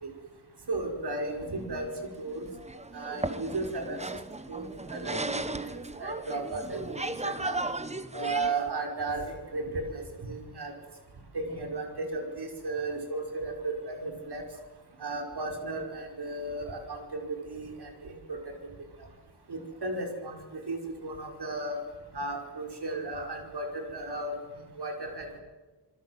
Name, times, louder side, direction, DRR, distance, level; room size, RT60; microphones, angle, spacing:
voice 1, 0.7-1.9 2.2-2.5 2.9-4.0 4.5-7.6 8.1-10.7 11.3-14.4 15.0-18.4 19.5-21.8 22.1-24.4 24.8-25.4, right 2 dB, 70° right, 3 dB, 5.2 m, -35 dB
sound 1, 1.4-8.7, right 2 dB, 15° right, 1.2 m, -36 dB
28.0 x 22.5 x 7.8 m, 1.2 s
wide cardioid pair, 115°, 41 cm